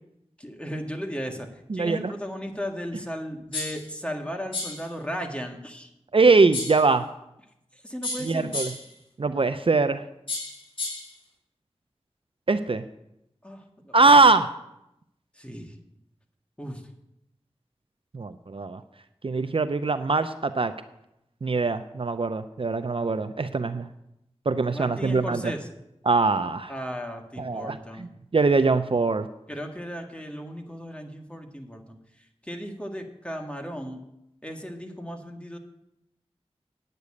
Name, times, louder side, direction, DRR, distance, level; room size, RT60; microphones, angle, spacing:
voice 1, 0.4-1.5 1.7-5.9 7.8-8.5 13.4-13.9 15.4-15.7 16.6-16.8 24.7-25.7 26.7-28.1 29.5-32.0 32.4-34.0 34.4-35.6, equal, 10° left, 3 dB, 1.7 m, -35 dB
voice 2, 1.7-2.1 6.1-7.1 8.2-8.7 9.2-10.0 12.5-12.8 13.9-14.5 18.1-18.8 19.2-20.7 21.4-23.9 24.5-25.5 26.1-26.7 27.4-29.3, right 3 dB, 55° right, 11 dB, 0.5 m, -22 dB
sound 1, 3.5-3.9 4.5-4.9 6.5-6.9 8.0-8.9 10.3-11.1, left 3 dB, 50° left, 3.1 m, -32 dB
9.2 x 6.8 x 8.5 m, 0.84 s
wide cardioid pair, 60°, 11 cm